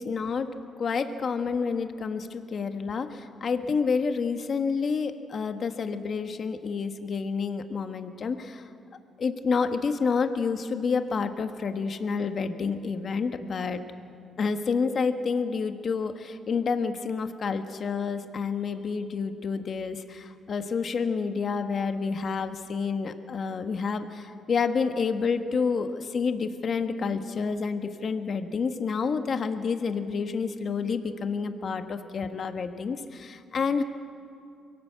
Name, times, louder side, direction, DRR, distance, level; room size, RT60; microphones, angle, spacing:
voice 1, 0.0-8.7 9.2-13.8 14.4-33.8, left 5 dB, 50° left, 8 dB, 1.3 m, -29 dB
23.5 x 17.0 x 8.2 m, 2.5 s
cardioid pair, 90°, 0 cm